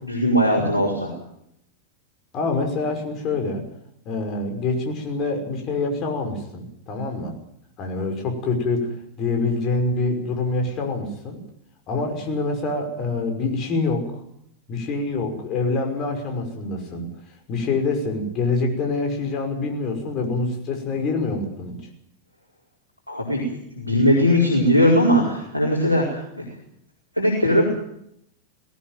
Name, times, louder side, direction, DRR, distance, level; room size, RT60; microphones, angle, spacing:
voice 1, 0.0-1.1 23.1-23.4 23.8-26.4 27.1-27.6, equal, 85° left, -3 dB, 5.1 m, -19 dB
voice 2, 2.3-3.6 4.1-7.3 7.8-11.4 11.9-14.2 14.7-17.1 17.5-21.8, left 3 dB, 35° left, 4 dB, 5.7 m, -26 dB
18.5 x 18.5 x 9.3 m, 0.75 s
figure-of-eight pair, 90°, 0 cm